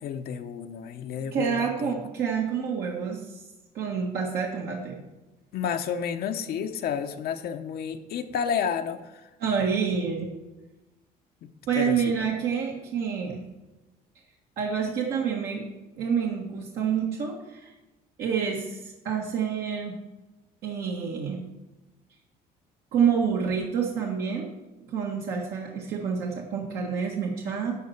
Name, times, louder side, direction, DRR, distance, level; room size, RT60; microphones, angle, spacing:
voice 1, 0.0-1.9 5.5-9.3 11.8-12.2, left 7 dB, 65° left, 7 dB, 0.8 m, -31 dB
voice 2, 1.3-3.4 3.7-5.0 9.4-10.3 11.7-13.4 14.6-15.6 15.9-17.7 18.2-20.0 20.6-21.4 22.9-24.5 24.9-27.7, right 6 dB, 70° right, -1 dB, 1.5 m, -28 dB
11.5 x 4.2 x 7.1 m, 1.1 s
cardioid pair, 110°, 17 cm